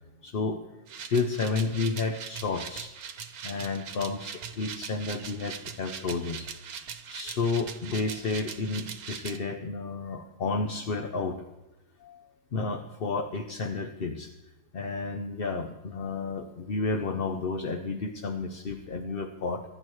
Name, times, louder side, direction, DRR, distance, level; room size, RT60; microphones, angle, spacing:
voice 1, 0.2-0.6 1.1-2.9 3.4-6.5 7.1-11.4 12.0-12.2 12.5-14.3 14.7-19.6, left 4 dB, 50° left, 5 dB, 0.8 m, -31 dB
sound 1, 0.9-9.4, right 7 dB, 75° right, 1.4 m, -41 dB
24.0 x 11.0 x 3.2 m, 0.99 s
omnidirectional pair, 1.6 m